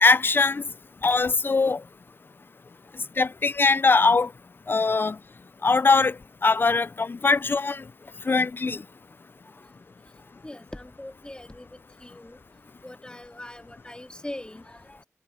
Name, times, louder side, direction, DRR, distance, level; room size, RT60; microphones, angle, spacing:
voice 1, 0.0-0.6 1.0-1.8 3.2-4.3 4.7-5.2 5.6-6.1 6.4-7.8 8.3-8.8, left 4 dB, 45° left, 0.3 m, -21 dB
voice 2, 10.4-12.4 12.8-15.1, left 1 dB, 15° left, 2.9 m, -42 dB
wide cardioid pair, 80°, 5 cm